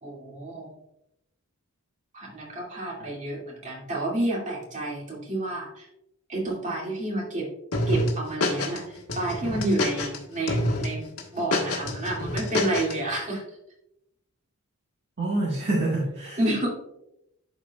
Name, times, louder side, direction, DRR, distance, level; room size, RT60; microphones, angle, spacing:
voice 1, 0.0-0.7 2.1-5.9 6.3-7.5 7.9-11.1 11.3-13.4 16.4-16.7, right 1 dB, 35° right, -4 dB, 2.4 m, -29 dB
sound 1, 7.7-8.8 9.1-10.2 10.5-10.9 11.2-12.9, left 1 dB, 75° left, 1.3 m, -27 dB
voice 2, 15.2-16.4, right 2 dB, 50° right, -5 dB, 1.6 m, -26 dB
11.5 x 4.6 x 2.3 m, 0.83 s
head